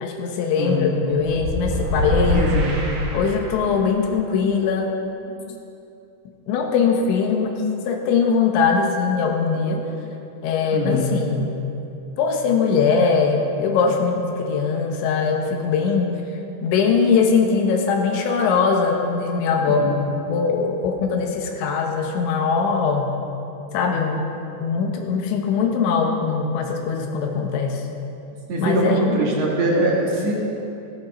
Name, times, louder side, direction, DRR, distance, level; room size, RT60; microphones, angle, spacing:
voice 1, 0.0-2.5 3.1-4.9 6.5-7.5 7.9-9.9 10.4-11.6 12.2-16.1 16.6-19.9 20.3-23.2 23.7-24.2 24.6-27.9 28.6-29.2, left 5 dB, 80° left, 3 dB, 3.5 m, -21 dB
voice 2, 0.6-0.9 2.3-2.7 5.3-5.4 10.7-11.2 19.7-20.0 28.5-30.3, right 1 dB, 45° right, -3 dB, 2.5 m, -22 dB
sound 1, 1.2-3.8, left 1 dB, 80° right, 4.2 m, -24 dB
14.0 x 11.5 x 5.6 m, 2.8 s
omnidirectional pair, 5.3 m